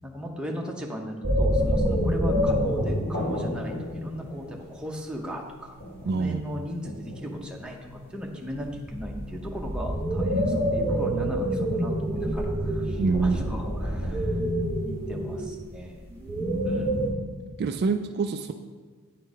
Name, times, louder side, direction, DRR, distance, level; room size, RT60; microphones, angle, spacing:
voice 1, 0.0-14.5 14.8-16.0 16.6-17.0, equal, 5° right, 0 dB, 0.8 m, -37 dB
sound 1, 1.2-3.2 6.4-6.5 8.5-17.1, equal, 10° left, 2.2 m, -26 dB
sound 2, 2.4-15.4, left 1 dB, 50° left, 2.3 m, -40 dB
voice 2, 6.0-6.4 10.3-10.4 13.0-13.5 16.3-16.6 17.6-18.5, right 4 dB, 45° right, 7 dB, 0.3 m, -26 dB
8.9 x 4.6 x 4.7 m, 1.4 s
head